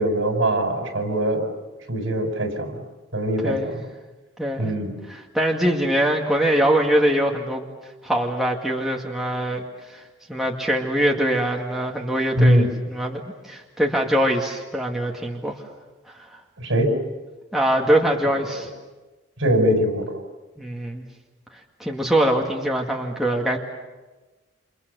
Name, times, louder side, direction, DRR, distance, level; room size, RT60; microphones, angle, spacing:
voice 1, 0.0-1.4 1.9-2.8 3.1-3.8 4.6-5.0 12.4-12.7 16.6-16.9 18.4-18.7 19.4-20.1, right 1 dB, 70° right, 4 dB, 6.0 m, -22 dB
voice 2, 4.4-4.7 5.1-7.7 8.0-9.6 9.9-10.0 10.3-15.6 16.1-16.4 17.5-18.7 20.6-21.0 21.8-23.6, right 1 dB, ahead, -1 dB, 2.0 m, -23 dB
29.0 x 28.0 x 6.8 m, 1.2 s
head